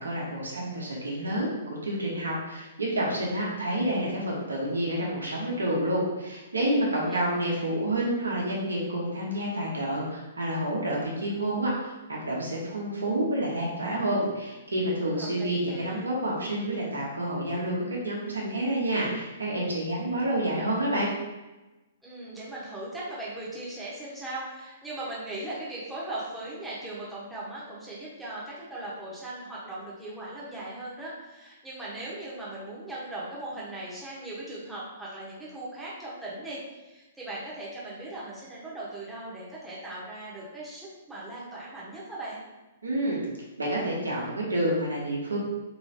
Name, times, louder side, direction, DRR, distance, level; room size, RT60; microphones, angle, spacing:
voice 1, 0.0-21.1 42.8-43.2 43.6-45.4, right 1 dB, 80° right, -4 dB, 0.9 m, -29 dB
voice 2, 6.9-7.3 15.2-16.0 22.0-42.4, right 2 dB, 5° right, -8 dB, 1.1 m, -39 dB
3.0 x 3.0 x 2.8 m, 1.1 s
figure-of-eight pair, 115°, 0 cm